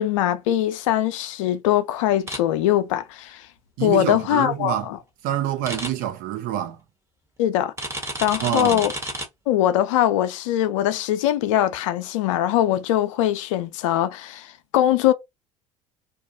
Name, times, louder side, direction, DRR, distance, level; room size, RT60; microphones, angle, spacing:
voice 1, 0.0-3.5 3.8-5.0 7.4-7.7 8.2-8.9 9.5-15.1, left 12 dB, 70° left, 0.4 m, -22 dB
sound 1, 2.3-2.4 5.6-5.9 7.8-9.3, right 1 dB, 15° right, 1.1 m, -30 dB
voice 2, 3.8-4.9 5.2-6.8 8.4-8.9, right 11 dB, 55° right, 0.6 m, -26 dB
2.4 x 2.0 x 2.6 m
hypercardioid pair, 70°, 17 cm